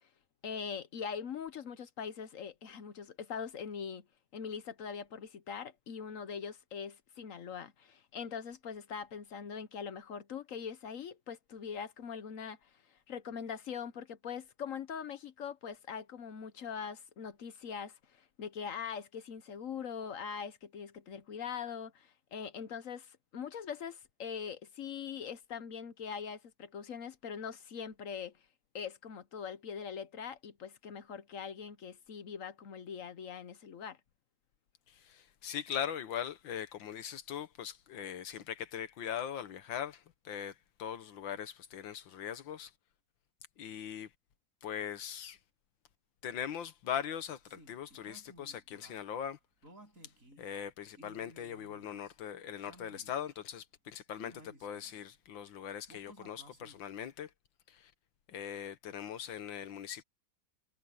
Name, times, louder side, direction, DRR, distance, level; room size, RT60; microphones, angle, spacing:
voice 1, 0.4-4.1 4.3-12.7 13.1-28.3 28.7-34.0, left 7 dB, 55° left, 1.0 m, -42 dB
voice 2, 34.9-42.7 43.6-44.1 44.6-45.4 46.2-49.4 50.4-57.3 57.7-57.9 58.3-60.0, left 9 dB, 90° left, 1.9 m, -41 dB
sound 1, 47.4-49.0 49.6-50.4 50.9-52.1 52.6-53.3 54.1-55.0 55.9-56.9, right 1 dB, 45° right, 7.6 m, -57 dB
omnidirectional pair, 2.0 m